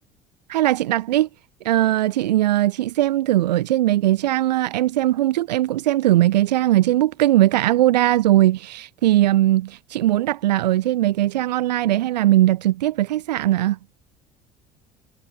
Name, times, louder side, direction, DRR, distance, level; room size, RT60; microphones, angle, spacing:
voice 1, 0.5-1.3 1.6-13.8, right 14 dB, 85° right, 0.7 m, -19 dB
hypercardioid pair, 60°, 21 cm